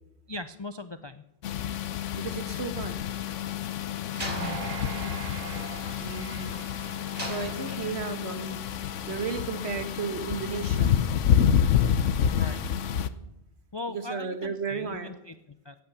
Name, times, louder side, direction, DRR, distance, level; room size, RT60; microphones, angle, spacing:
voice 1, 0.3-1.3 4.3-4.6 12.3-12.6 13.7-15.8, left 2 dB, 45° left, 11 dB, 0.3 m, -39 dB
sound 1, 1.4-13.1, left 9 dB, 85° left, 1.1 m, -28 dB
voice 2, 2.1-2.9 6.0-6.6 7.3-8.6 9.1-11.0 13.9-15.1, right 5 dB, 60° right, 8 dB, 1.7 m, -34 dB
Slam, 4.1-6.6 7.2-8.4, right 1 dB, 40° right, 3.7 m, -40 dB
sound 2, 4.4-7.8 8.3-8.4, right 10 dB, 90° right, 1.0 m, -42 dB
16.5 x 8.7 x 6.9 m, 0.88 s
omnidirectional pair, 1.2 m